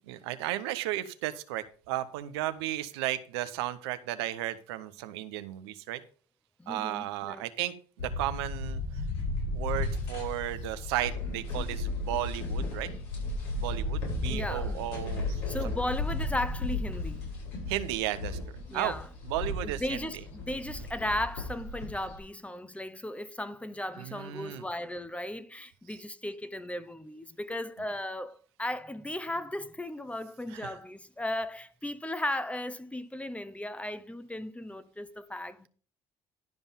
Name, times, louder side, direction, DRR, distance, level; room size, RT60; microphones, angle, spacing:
voice 1, 0.1-6.0 6.7-8.8 9.5-12.9 13.6-15.3 15.6-15.9 17.7-18.4 18.7-18.9 19.2-20.2 20.8-20.9 23.9-24.6 30.5-30.8, right 14 dB, 85° right, 0.8 m, -34 dB
voice 2, 6.6-7.4 14.3-14.9 15.5-17.2 18.7-19.1 19.6-35.7, left 1 dB, 10° left, 1.0 m, -36 dB
sound 1, 8.0-22.2, left 2 dB, 80° left, 6.3 m, -34 dB
12.0 x 5.4 x 5.4 m
hypercardioid pair, 65°, 13 cm